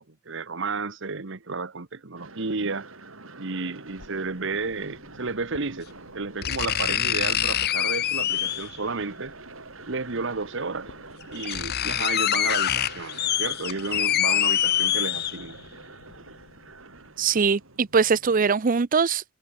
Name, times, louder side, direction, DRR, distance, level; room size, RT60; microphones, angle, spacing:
voice 1, 0.0-2.9 3.4-5.9 6.1-9.4 9.9-10.9 11.3-15.6, right 4 dB, 65° right, 1.3 m, -32 dB
sound 1, 2.2-18.5, right 3 dB, 80° right, 5.7 m, -46 dB
sound 2, 4.0-4.1 5.5-5.6 6.4-8.8 10.1-10.2 10.9-11.0 11.2-15.7 16.1-16.2, left 11 dB, 50° left, 0.6 m, -25 dB
voice 2, 17.2-19.2, right 5 dB, 45° right, 0.5 m, -22 dB
head